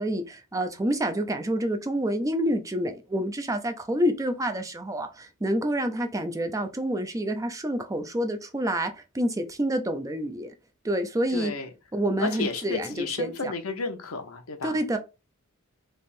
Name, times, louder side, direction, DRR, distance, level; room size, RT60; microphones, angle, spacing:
voice 1, 0.0-10.5 10.8-11.5 11.9-13.5 14.6-15.0, right 1 dB, 15° right, 0.5 m, -28 dB
voice 2, 11.3-11.7 12.2-14.8, left 3 dB, 70° left, 0.9 m, -32 dB
3.4 x 3.0 x 4.3 m
head